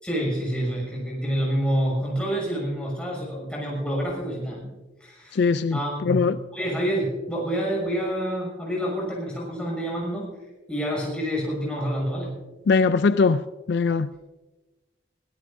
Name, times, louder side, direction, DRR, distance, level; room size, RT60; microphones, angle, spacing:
voice 1, 0.0-4.7 5.0-5.5 5.7-6.2 6.5-10.3 10.7-12.4, equal, 5° left, -3 dB, 6.3 m, -27 dB
voice 2, 5.3-5.8 6.1-6.4 12.7-13.4 13.7-14.3, left 4 dB, 60° left, 13 dB, 0.4 m, -21 dB
22.5 x 17.0 x 2.6 m, 1.2 s
head